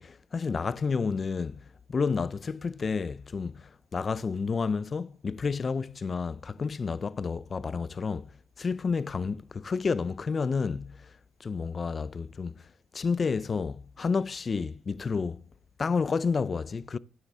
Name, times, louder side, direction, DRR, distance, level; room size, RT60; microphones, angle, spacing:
voice 1, 0.0-8.3 8.6-15.4 15.8-17.0, left 5 dB, 35° left, 0.5 m, -30 dB
9.5 x 9.3 x 3.6 m
cardioid pair, 90°, 0 cm